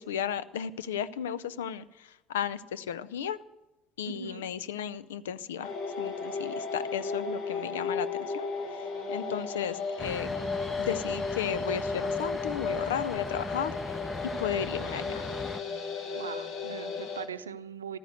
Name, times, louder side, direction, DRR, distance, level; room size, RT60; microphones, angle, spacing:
voice 1, 0.0-1.8 2.3-3.4 4.0-5.7 6.0-10.5 10.8-13.7 14.4-15.1, left 9 dB, 70° left, 16 dB, 0.6 m, -34 dB
voice 2, 4.1-4.5 16.1-18.0, right 7 dB, 80° right, 12 dB, 0.7 m, -40 dB
sound 1, 5.6-17.3, left 4 dB, 55° left, 2.1 m, -34 dB
sound 2, 10.0-15.6, left 2 dB, 15° left, 0.7 m, -39 dB
15.0 x 13.0 x 6.5 m, 0.99 s
figure-of-eight pair, 60°, 0 cm